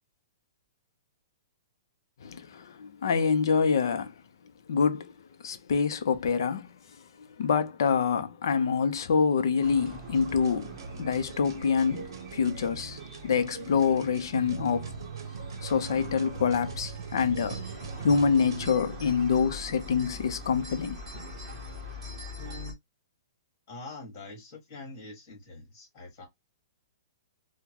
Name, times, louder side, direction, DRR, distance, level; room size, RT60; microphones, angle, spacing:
voice 1, 2.2-4.1 4.7-5.1 5.4-6.7 7.2-14.9 15.6-17.6 18.0-21.0, left 6 dB, 60° left, 0.6 m, -26 dB
sound 1, 9.6-22.7, equal, 15° right, 1.0 m, -43 dB
sound 2, 10.1-18.7, right 5 dB, 65° right, 0.7 m, -41 dB
voice 2, 23.7-26.3, left 2 dB, 30° left, 1.8 m, -44 dB
3.7 x 2.2 x 2.9 m
hypercardioid pair, 170°, 2 cm